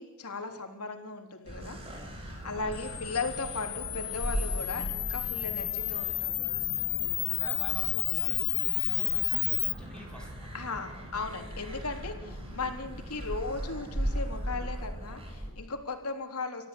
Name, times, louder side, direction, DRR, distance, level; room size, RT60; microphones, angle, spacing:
voice 1, 0.0-1.8 2.4-6.3 10.5-16.7, left 3 dB, 90° left, 4 dB, 3.6 m, -37 dB
sound 1, 1.4-15.5, equal, 25° right, 6.2 m, -38 dB
Camera, 2.7-9.7, left 18 dB, 55° left, 1.6 m, -31 dB
voice 2, 7.3-10.5, left 1 dB, 5° left, -1 dB, 5.1 m, -49 dB
28.5 x 14.5 x 8.4 m, 1.0 s
head